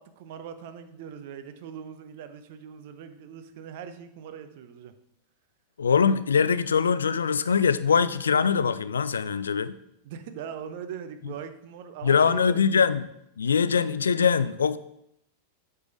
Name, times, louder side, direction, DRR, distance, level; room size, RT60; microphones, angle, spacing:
voice 1, 0.0-4.9 10.0-12.6, right 8 dB, 50° right, 0.7 m, -40 dB
voice 2, 5.8-9.8 12.0-13.1 13.4-14.8, left 6 dB, 70° left, 0.3 m, -22 dB
8.2 x 4.8 x 5.0 m
figure-of-eight pair, 90°, 0 cm